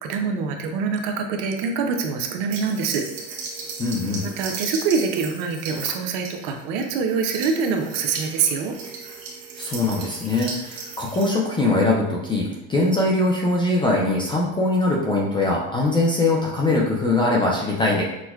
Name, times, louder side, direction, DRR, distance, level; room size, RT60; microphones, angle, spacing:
voice 1, 0.0-3.0 4.2-8.8, right 5 dB, 65° right, 3 dB, 0.7 m, -25 dB
sound 1, 2.5-11.3, right 4 dB, 90° right, 1.1 m, -36 dB
voice 2, 3.8-4.3 9.6-18.0, left 2 dB, 15° left, -3 dB, 0.3 m, -22 dB
6.0 x 2.1 x 2.3 m, 0.95 s
cardioid pair, 145°, 37 cm